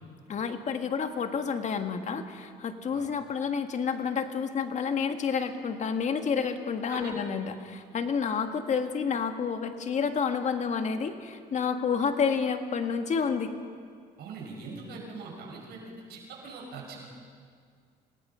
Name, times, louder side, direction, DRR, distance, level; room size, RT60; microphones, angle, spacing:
voice 1, 0.3-13.5, left 6 dB, 45° left, 7 dB, 1.6 m, -29 dB
voice 2, 14.2-17.0, right 4 dB, 75° right, -1 dB, 5.9 m, -42 dB
26.5 x 18.0 x 5.6 m, 2.1 s
cardioid pair, 110°, 17 cm